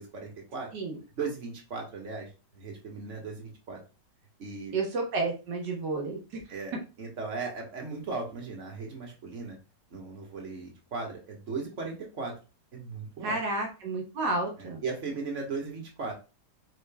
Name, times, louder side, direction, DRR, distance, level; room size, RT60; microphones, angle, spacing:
voice 1, 0.0-0.7 1.2-3.8 4.4-4.7 6.5-9.6 9.9-12.3 12.7-13.4 14.6-16.1, right 4 dB, 50° right, 1 dB, 1.6 m, -37 dB
voice 2, 4.7-6.2 13.2-14.8, right 3 dB, 85° right, -1 dB, 1.8 m, -31 dB
5.1 x 4.5 x 2.3 m, 0.31 s
omnidirectional pair, 1.8 m